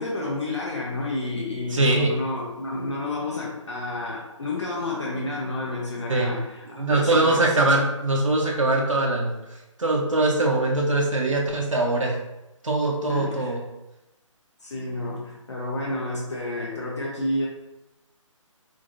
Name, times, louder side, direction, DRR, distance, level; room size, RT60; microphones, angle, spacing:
voice 1, 0.0-7.6 13.1-13.6 14.6-17.5, left 2 dB, 60° left, -4 dB, 1.0 m, -30 dB
voice 2, 1.7-2.1 6.1-6.4 6.7-12.2 12.6-13.6, right 2 dB, 75° right, -1 dB, 0.6 m, -22 dB
5.1 x 2.6 x 2.6 m, 0.98 s
figure-of-eight pair, 145°, 17 cm